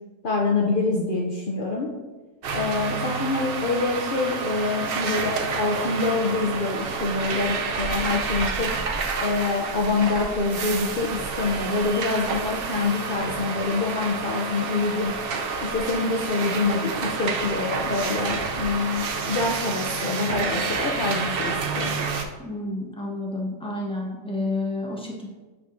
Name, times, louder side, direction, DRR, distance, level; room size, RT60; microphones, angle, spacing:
voice 1, 0.2-1.9 2.5-8.8 9.2-15.1 15.6-21.9, left 3 dB, 70° left, -1 dB, 0.5 m, -26 dB
sound 1, 2.4-22.2, right 5 dB, 75° right, 0.5 m, -29 dB
voice 2, 22.4-25.3, left 2 dB, 5° left, -3 dB, 1.0 m, -30 dB
8.3 x 7.0 x 2.6 m, 1.3 s
omnidirectional pair, 1.8 m